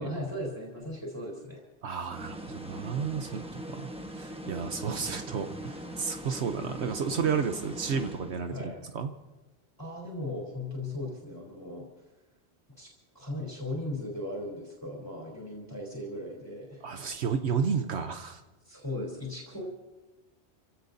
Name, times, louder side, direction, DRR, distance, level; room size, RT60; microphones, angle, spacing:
voice 1, 0.0-1.6 8.5-8.9 9.8-11.8 12.8-16.9 18.6-19.6, left 1 dB, 15° left, -2 dB, 3.7 m, -37 dB
voice 2, 1.8-9.1 16.8-18.4, right 6 dB, 70° right, 7 dB, 1.1 m, -32 dB
sound 1, 2.1-8.7, equal, 5° right, 0.9 m, -41 dB
29.0 x 16.5 x 2.7 m, 1.1 s
omnidirectional pair, 1.2 m